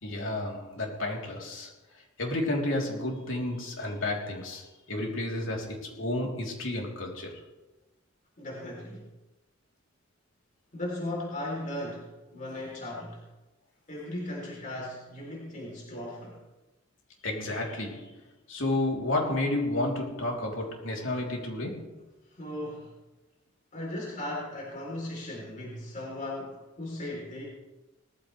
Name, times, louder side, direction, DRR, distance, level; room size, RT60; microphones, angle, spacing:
voice 1, 0.0-1.7 2.2-7.4 17.2-18.2 18.5-22.0, left 1 dB, 75° left, -1 dB, 3.5 m, -31 dB
voice 2, 8.4-9.1 10.7-13.2 13.9-16.4 22.3-22.9 23.7-27.4, left 1 dB, 40° left, -3 dB, 3.6 m, -37 dB
19.5 x 14.5 x 3.3 m, 1.1 s
head